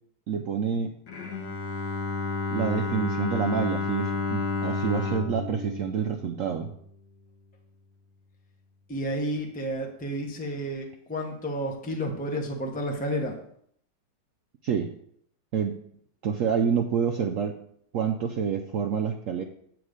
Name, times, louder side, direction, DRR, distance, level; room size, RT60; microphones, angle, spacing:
voice 1, 0.3-1.0 2.5-6.7 14.6-14.9 15.5-15.7 16.2-17.5 17.9-19.4, right 7 dB, 80° right, 4 dB, 0.7 m, -27 dB
Bowed string instrument, 1.1-7.0, left 4 dB, 85° left, 1.8 m, -31 dB
voice 2, 8.9-13.4, equal, 5° left, 2 dB, 0.7 m, -31 dB
9.1 x 3.5 x 6.4 m, 0.66 s
omnidirectional pair, 2.0 m